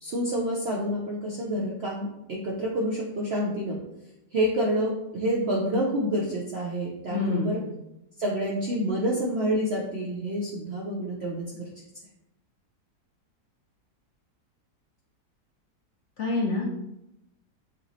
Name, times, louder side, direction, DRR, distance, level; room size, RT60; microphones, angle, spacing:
voice 1, 0.0-3.8 4.3-7.6 8.2-11.7, equal, 65° right, -3 dB, 0.6 m, -28 dB
voice 2, 7.1-7.5 16.2-16.7, left 3 dB, 65° left, -2 dB, 0.7 m, -26 dB
5.7 x 3.0 x 2.7 m, 0.87 s
omnidirectional pair, 1.8 m